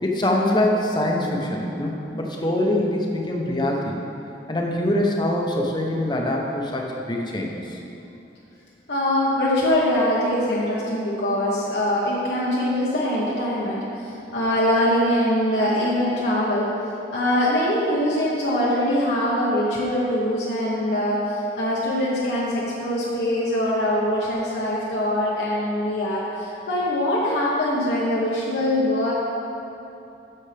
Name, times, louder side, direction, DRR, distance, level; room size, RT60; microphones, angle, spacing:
voice 1, 0.0-4.0 4.5-7.8, left 1 dB, 25° left, 0 dB, 0.8 m, -24 dB
voice 2, 8.9-16.7 17.1-29.1, left 1 dB, 75° left, -7 dB, 1.2 m, -23 dB
10.0 x 7.1 x 3.4 m, 2.8 s
head